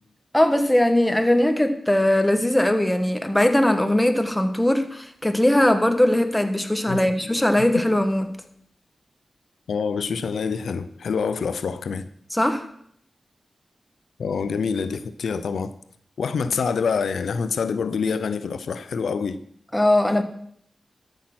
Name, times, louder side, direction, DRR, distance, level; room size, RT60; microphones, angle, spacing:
voice 1, 0.3-8.3 12.3-12.7 19.7-20.2, left 1 dB, 10° left, 1.3 m, -20 dB
voice 2, 9.7-12.1 14.2-15.8 16.2-19.4, left 5 dB, 90° left, 0.5 m, -26 dB
13.0 x 6.3 x 6.1 m
cardioid pair, 65°, 0 cm